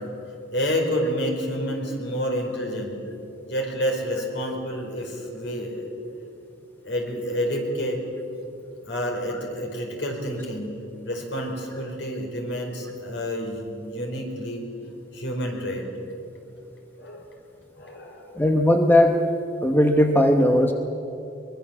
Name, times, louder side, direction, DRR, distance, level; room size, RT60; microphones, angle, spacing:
voice 1, 0.5-2.9 3.5-5.9 6.8-8.0 8.9-10.8 11.0-14.7 15.1-15.9 17.0-17.3 17.8-18.5 20.4-20.5, equal, 65° left, 2 dB, 4.5 m, -29 dB
voice 2, 18.4-19.2 19.6-20.7, left 1 dB, 10° left, 4 dB, 1.0 m, -18 dB
23.0 x 21.0 x 7.3 m, 2.9 s
head